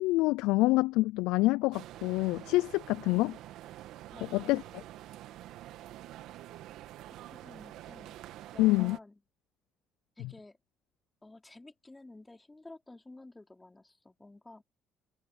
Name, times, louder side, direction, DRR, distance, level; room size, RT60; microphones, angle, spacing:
voice 1, 0.0-3.3 4.3-4.6 8.6-9.0, left 20 dB, 80° left, 0.4 m, -26 dB
sound 1, 1.7-9.0, right 14 dB, 75° right, 2.2 m, -47 dB
voice 2, 4.1-4.8 7.3-9.2 10.2-10.6 11.2-14.6, left 2 dB, 15° left, 4.6 m, -52 dB
hypercardioid pair, 60°, 0 cm